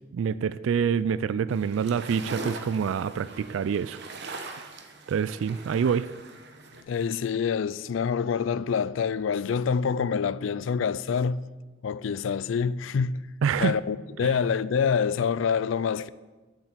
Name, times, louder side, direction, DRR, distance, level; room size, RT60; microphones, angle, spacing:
voice 1, 0.1-4.0 4.3-4.6 5.1-6.1 13.4-13.8, right 7 dB, 80° right, 0.3 m, -26 dB
sound 1, 1.5-6.8, right 2 dB, 60° right, 0.9 m, -41 dB
voice 2, 6.9-11.5 11.8-13.3 13.6-16.1, left 6 dB, 75° left, 0.4 m, -26 dB
7.6 x 7.1 x 7.3 m
head